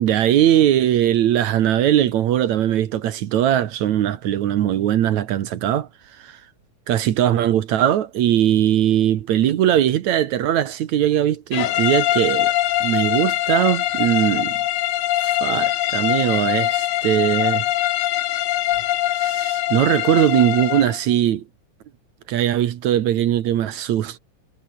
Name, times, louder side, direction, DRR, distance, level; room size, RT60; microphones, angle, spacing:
voice 1, 0.0-5.9 6.2-6.4 6.9-12.5 12.8-14.6 15.2-17.7 19.1-21.4 22.3-24.2, right 11 dB, 70° right, 2.4 m, -20 dB
sound 1, 11.5-21.0, left 14 dB, 80° left, 2.4 m, -22 dB
omnidirectional pair, 3.6 m